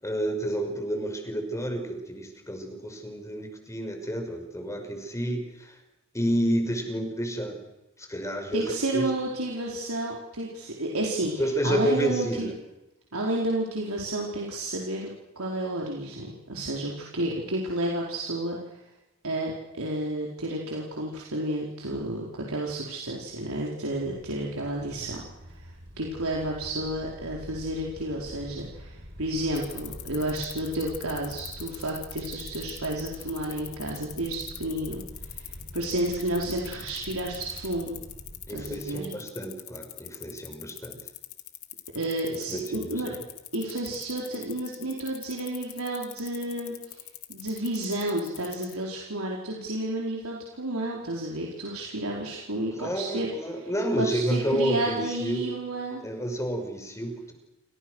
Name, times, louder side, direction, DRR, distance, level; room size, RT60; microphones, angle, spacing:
voice 1, 0.0-5.8 6.1-7.6 8.0-9.1 11.4-12.5 38.5-41.0 42.3-43.2 52.7-55.4 56.0-57.3, right 1 dB, 15° left, 5 dB, 5.8 m, -30 dB
voice 2, 8.5-12.5 13.1-18.6 19.2-25.2 25.6-25.7 26.0-38.0 38.5-39.1 41.9-43.2 43.5-47.0 47.3-53.3 54.0-56.1, right 1 dB, 85° right, -2 dB, 4.7 m, -31 dB
sound 1, 23.9-38.8, equal, 55° right, 7.7 m, -45 dB
sound 2, 29.6-48.7, left 15 dB, 80° left, 2.8 m, -42 dB
29.0 x 26.5 x 6.5 m, 0.99 s
head